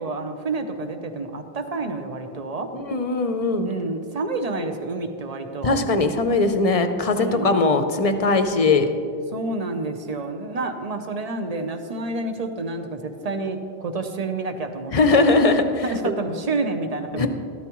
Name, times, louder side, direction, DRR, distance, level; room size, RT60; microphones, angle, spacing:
voice 1, 0.0-2.7 3.6-5.8 7.2-7.8 9.3-15.4 15.8-17.3, right 3 dB, 40° right, 7 dB, 0.8 m, -29 dB
voice 2, 2.7-3.7 5.6-8.9 14.9-15.8 17.1-17.3, left 3 dB, 40° left, 8 dB, 0.6 m, -20 dB
13.5 x 12.5 x 3.0 m, 2.5 s
omnidirectional pair, 1.0 m